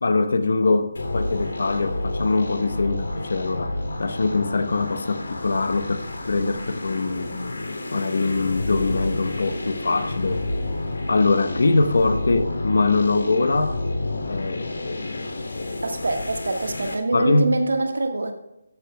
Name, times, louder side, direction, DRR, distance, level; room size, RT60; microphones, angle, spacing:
voice 1, 0.0-7.3 7.9-10.4 11.1-13.8 14.3-15.4 17.1-17.6, left 3 dB, 55° left, 1.0 m, -23 dB
sound 1, 0.9-16.9, left 2 dB, 80° left, 2.7 m, -30 dB
voice 2, 15.8-18.3, right 2 dB, 75° right, 1.5 m, -24 dB
13.5 x 10.0 x 2.3 m
hypercardioid pair, 180°, 0 cm